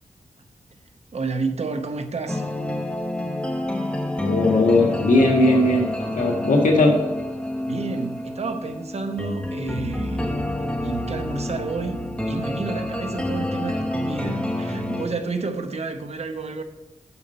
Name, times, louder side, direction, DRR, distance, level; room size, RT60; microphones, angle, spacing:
voice 1, 1.1-2.4 7.7-10.5 10.8-12.0 12.3-16.6, right 4 dB, 55° right, 0.8 m, -30 dB
sound 1, 2.3-15.1, left 1 dB, 10° left, 1.0 m, -28 dB
voice 2, 4.2-7.0, left 2 dB, 85° left, 1.5 m, -18 dB
7.0 x 6.6 x 5.4 m
wide cardioid pair, 90°, 13 cm